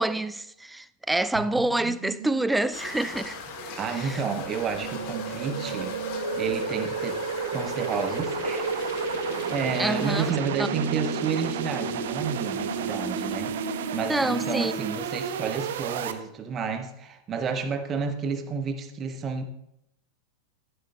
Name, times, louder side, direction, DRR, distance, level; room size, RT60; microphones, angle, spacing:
voice 1, 0.0-3.4 3.6-4.2 9.8-10.7 14.1-14.7, right 2 dB, 5° right, 0.4 m, -27 dB
sound 1, 1.3-16.1, right 8 dB, 55° right, 0.7 m, -33 dB
sound 2, 2.7-10.3, left 6 dB, 45° left, 1.7 m, -40 dB
voice 2, 3.8-5.9 6.3-7.2 7.5-8.6 9.5-19.4, right 5 dB, 25° right, 1.1 m, -31 dB
sound 3, 4.7-14.6, equal, 85° left, 1.5 m, -36 dB
14.0 x 11.5 x 2.3 m
figure-of-eight pair, 90°, 0 cm